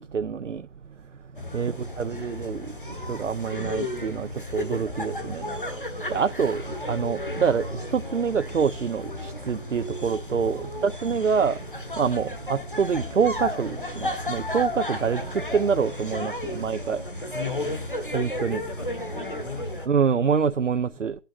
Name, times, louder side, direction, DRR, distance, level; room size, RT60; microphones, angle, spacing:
voice 1, 0.1-0.6 1.5-2.6 3.1-4.3 4.5-5.4 6.1-6.6 6.9-7.7 7.9-11.6 12.0-15.2 15.5-17.0 18.1-18.6 19.9-21.1, right 6 dB, 75° right, 0.5 m, -26 dB
sound 1, 1.3-19.9, left 1 dB, 45° left, 1.2 m, -33 dB
voice 2, 1.6-2.5 10.4-11.1 16.5-17.3 18.5-18.9 19.1-19.9, left 2 dB, 80° left, 4.9 m, -43 dB
18.0 x 9.0 x 2.4 m
figure-of-eight pair, 175°, 37 cm